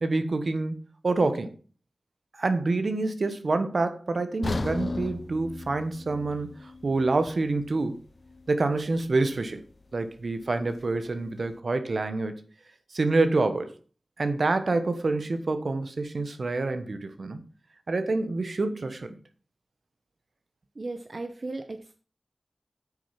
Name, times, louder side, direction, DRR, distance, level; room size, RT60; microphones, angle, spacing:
voice 1, 0.0-0.7 1.0-1.5 2.3-6.5 6.8-8.0 8.5-9.6 9.9-12.4 12.9-13.7 14.2-17.4 17.9-19.2, right 3 dB, 80° right, 1.2 m, -27 dB
sound 1, 4.4-8.5 8.8-9.0 9.6-9.7, left 2 dB, 70° left, 0.8 m, -36 dB
voice 2, 20.8-21.9, right 2 dB, 60° right, 0.8 m, -36 dB
8.9 x 6.4 x 5.9 m
wide cardioid pair, 55°, 0 cm